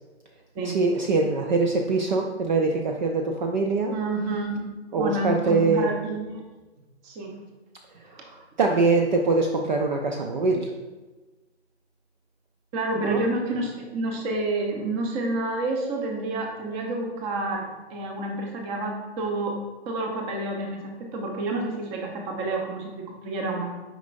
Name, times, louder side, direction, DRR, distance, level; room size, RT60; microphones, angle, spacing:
voice 1, 0.6-3.9 4.9-5.9 8.0-10.7 12.9-13.2, right 3 dB, 40° right, 2 dB, 0.6 m, -23 dB
voice 2, 3.9-4.7 4.9-6.4 7.0-7.4 12.7-19.6 19.9-23.7, right 2 dB, 20° right, 2 dB, 0.9 m, -29 dB
9.0 x 5.3 x 2.6 m, 1.2 s
figure-of-eight pair, 130°, 35 cm